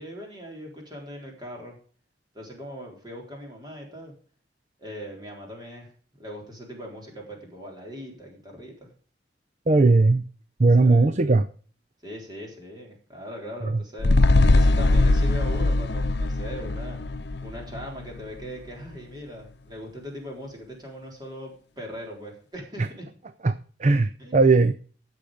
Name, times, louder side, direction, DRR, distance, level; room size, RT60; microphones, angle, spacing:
voice 1, 0.0-1.7 2.3-4.1 4.8-5.9 6.2-8.9 10.7-11.2 12.0-14.2 14.5-17.0 17.4-23.1 24.2-24.4, equal, 25° right, -1 dB, 4.0 m, -40 dB
voice 2, 9.7-10.2 10.6-11.4 23.4-23.5 23.8-24.7, right 3 dB, 40° right, 12 dB, 0.6 m, -18 dB
sound 1, 14.0-18.5 18.9-19.0, left 2 dB, 70° left, 0.7 m, -21 dB
15.5 x 6.6 x 5.1 m, 0.41 s
head